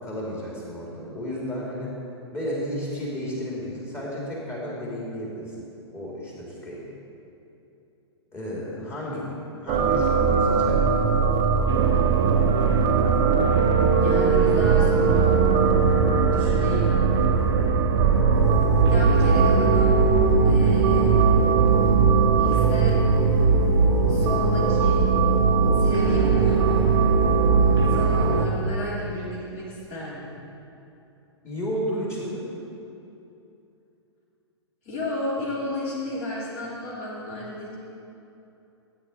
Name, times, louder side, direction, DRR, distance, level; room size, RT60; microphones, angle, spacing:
voice 1, 0.0-1.9 2.3-5.5 5.9-6.8 8.3-10.8 31.4-32.4, equal, 15° left, -5 dB, 2.7 m, -32 dB
sound 1, 9.7-28.5, right 5 dB, 30° right, 1.0 m, -20 dB
sound 2, 11.7-28.5, right 5 dB, 65° right, 0.7 m, -26 dB
voice 2, 13.9-15.3 16.2-16.9 18.9-20.0 20.4-21.3 22.4-23.0 24.1-25.0 25.8-26.9 27.9-30.3 34.8-37.8, equal, 40° left, -6 dB, 2.8 m, -32 dB
14.0 x 8.7 x 4.2 m, 2.8 s
figure-of-eight pair, 110°, 15 cm